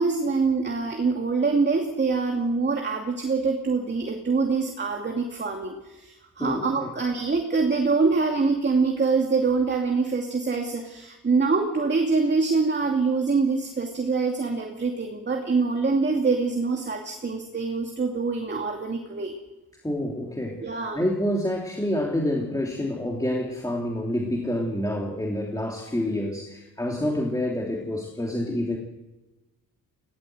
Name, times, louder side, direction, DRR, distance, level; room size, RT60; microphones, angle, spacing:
voice 1, 0.0-19.3 20.6-21.0, right 4 dB, 30° right, 2 dB, 2.6 m, -25 dB
voice 2, 6.4-6.9 19.8-28.8, left 1 dB, 10° left, -1 dB, 3.1 m, -28 dB
21.0 x 17.5 x 7.9 m, 1.1 s
cardioid pair, 110°, 35 cm